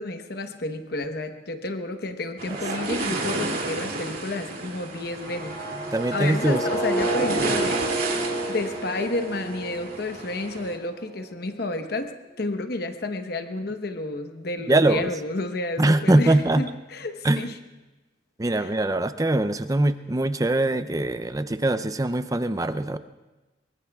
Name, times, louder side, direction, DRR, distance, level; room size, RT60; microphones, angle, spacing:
voice 1, 0.0-7.8 8.5-17.6 18.5-18.7, left 2 dB, 55° left, 7 dB, 1.0 m, -31 dB
sound 1, 2.4-10.7, right 2 dB, 50° right, 2.6 m, -32 dB
sound 2, 5.1-11.1, right 1 dB, 25° left, 3.0 m, -31 dB
voice 2, 5.9-6.6 14.7-15.1 15.8-16.6 17.2-17.4 18.4-23.0, right 2 dB, 20° right, 12 dB, 0.5 m, -22 dB
25.0 x 23.0 x 2.4 m, 1.2 s
head